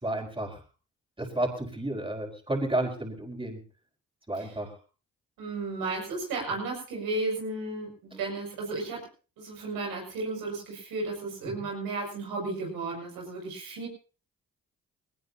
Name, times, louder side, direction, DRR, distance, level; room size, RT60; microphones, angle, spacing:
voice 1, 0.0-0.6 1.2-3.6 4.3-4.7 8.1-8.2, right 1 dB, 15° right, 2 dB, 5.2 m, -31 dB
voice 2, 5.4-9.1 9.4-13.9, right 3 dB, 90° right, 0 dB, 6.9 m, -34 dB
20.5 x 18.5 x 2.9 m, 0.36 s
supercardioid pair, 50°, 34 cm